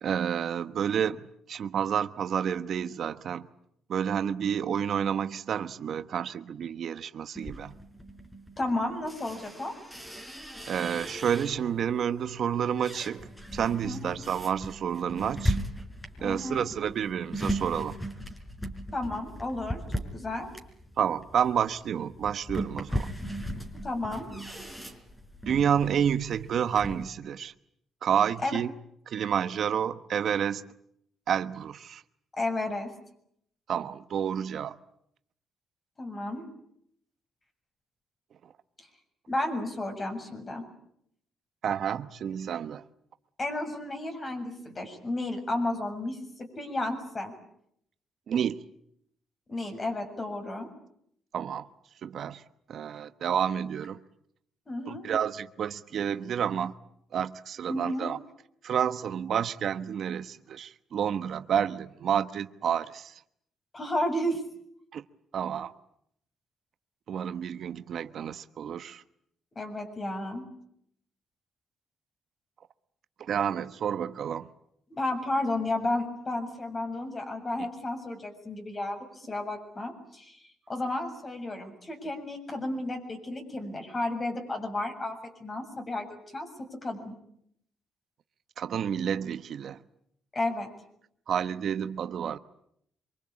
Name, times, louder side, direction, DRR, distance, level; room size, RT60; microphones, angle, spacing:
voice 1, 0.0-3.5 3.9-7.7 10.7-15.6 16.2-18.0 21.0-23.1 25.5-27.5 28.0-28.7 29.1-30.6 31.3-32.0 33.7-34.8 38.4-38.5 41.6-42.8 48.3-48.6 51.3-51.7 52.0-52.4 52.7-54.0 54.9-56.7 57.1-58.2 58.6-63.2 64.9-65.0 65.3-65.7 67.1-69.0 73.2-74.5 77.6-77.7 88.6-89.8 91.3-92.4, right 8 dB, 60° right, 1.1 m, -29 dB
sound 1, 7.3-11.9 12.3-27.0, equal, 5° left, 4.5 m, -37 dB
voice 2, 8.6-9.7 13.8-14.1 16.2-16.7 18.9-20.5 23.8-24.3 28.4-28.6 32.4-32.9 36.0-36.5 39.3-40.6 43.4-47.3 49.5-50.7 54.7-55.1 57.7-58.1 63.7-64.4 69.5-70.5 74.9-86.5 86.8-87.1 90.3-90.7, left 2 dB, 30° left, 7.3 m, -32 dB
26.0 x 24.0 x 8.6 m
cardioid pair, 90°, 0 cm